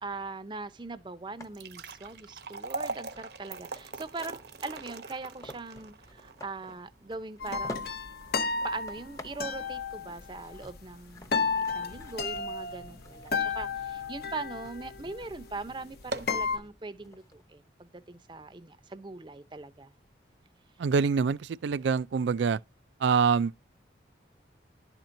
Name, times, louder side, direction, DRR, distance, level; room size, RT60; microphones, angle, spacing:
voice 1, 0.0-7.8 8.6-19.9, right 3 dB, 25° right, 0.5 m, -41 dB
sound 1, 1.3-13.6 14.1-14.2 14.9-15.0 15.4-15.5 15.9-16.5, right 3 dB, 65° right, 0.8 m, -43 dB
sound 2, 1.4-17.4, left 1 dB, 20° left, 0.7 m, -52 dB
sound 3, 7.4-16.6, left 4 dB, 55° left, 0.7 m, -33 dB
voice 2, 20.8-22.6 23.0-23.6, right 5 dB, 80° right, 0.4 m, -25 dB
11.5 x 4.4 x 2.6 m
head